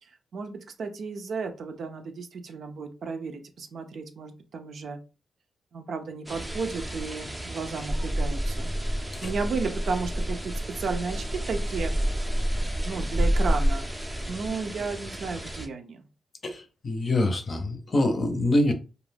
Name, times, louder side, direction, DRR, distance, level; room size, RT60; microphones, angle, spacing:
voice 1, 0.0-5.0 5.7-8.7 9.2-11.9 12.5-13.9 14.2-16.1, right 4 dB, 65° right, 0.5 m, -33 dB
sound 1, 6.3-15.7, equal, 10° right, 0.5 m, -29 dB
voice 2, 16.4-18.7, left 1 dB, 40° left, 0.6 m, -25 dB
2.4 x 2.2 x 3.3 m
cardioid pair, 95°, 0 cm